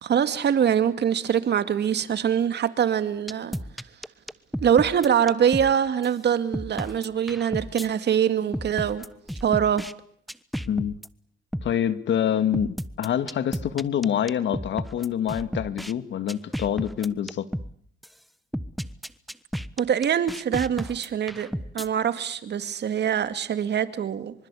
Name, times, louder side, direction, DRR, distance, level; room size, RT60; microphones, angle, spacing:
voice 1, 0.0-3.6 4.6-9.0 9.4-9.8 19.8-24.3, right 8 dB, 60° right, 2.3 m, -24 dB
sound 1, 3.3-5.7 6.0-6.1 6.5-7.9 8.5-9.9 10.3-11.1 11.5-11.7 12.5-15.9 16.3-17.7 18.0-18.1 18.5-21.9, equal, ahead, 1.2 m, -33 dB
voice 2, 10.6-11.0 11.6-17.5, left 9 dB, 65° left, 2.0 m, -26 dB
25.5 x 25.5 x 8.5 m
cardioid pair, 90°, 20 cm